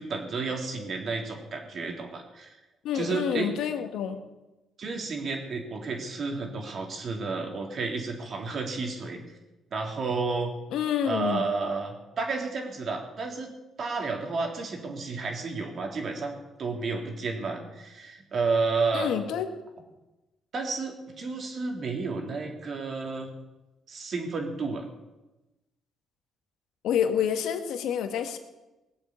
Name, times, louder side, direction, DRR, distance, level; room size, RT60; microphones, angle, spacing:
voice 1, 0.0-2.5 2.9-3.5 4.8-9.2 9.7-10.5 11.0-13.5 13.8-19.1 20.5-23.3 23.9-24.8, right 4 dB, 55° right, 3 dB, 3.5 m, -31 dB
voice 2, 2.8-4.2 10.7-11.5 18.9-19.5 26.8-28.4, left 8 dB, 85° left, 7 dB, 1.7 m, -28 dB
19.5 x 8.2 x 8.5 m, 1.0 s
cardioid pair, 90°, 0 cm